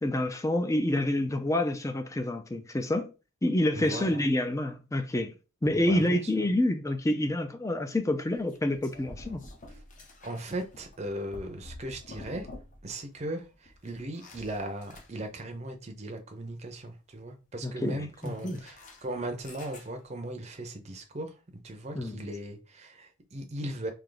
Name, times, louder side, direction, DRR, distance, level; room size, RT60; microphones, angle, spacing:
voice 1, 0.0-3.1 3.4-5.3 5.6-9.4 17.6-18.6 21.9-22.2, left 1 dB, 15° left, 0.4 m, -28 dB
voice 2, 3.8-4.2 5.7-6.4 9.7-9.8 10.2-12.5 12.8-21.4 21.6-23.9, right 1 dB, 30° right, 0.6 m, -38 dB
sound 1, 8.1-13.0 13.2-15.5 18.1-20.2, left 2 dB, 35° left, 0.8 m, -49 dB
3.4 x 2.8 x 3.8 m
head